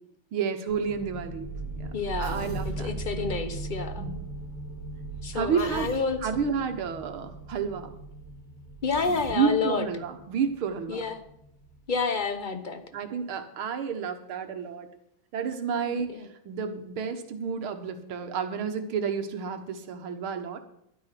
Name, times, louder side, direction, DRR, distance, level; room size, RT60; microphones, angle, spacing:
voice 1, 0.3-1.5 1.8-1.9 2.2-3.3 4.0-4.2 5.3-5.9 6.2-8.0 9.3-11.0 12.9-14.9 15.3-20.6, right 6 dB, 90° right, 7 dB, 2.1 m, -30 dB
sound 1, 0.7-12.1, right 3 dB, 85° left, 7.9 m, -39 dB
voice 2, 1.9-4.0 5.2-6.2 8.8-9.9 10.9-11.2 11.9-12.8 15.8-16.3, left 4 dB, 35° left, 9 dB, 0.8 m, -29 dB
Human voice, 2.2-2.8 5.6-6.0 8.9-9.4, right 2 dB, 30° right, 3.0 m, -41 dB
12.0 x 11.0 x 5.9 m, 0.76 s
omnidirectional pair, 2.2 m